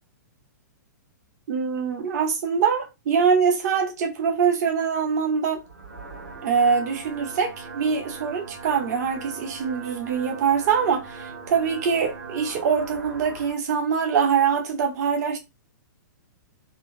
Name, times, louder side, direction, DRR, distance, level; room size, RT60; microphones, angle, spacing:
voice 1, 1.5-5.6 6.4-15.4, right 6 dB, 60° right, 0.7 m, -23 dB
sound 1, 5.6-13.5, right 4 dB, 80° right, 1.7 m, -40 dB
3.6 x 2.0 x 2.4 m
hypercardioid pair, 130°, 10 cm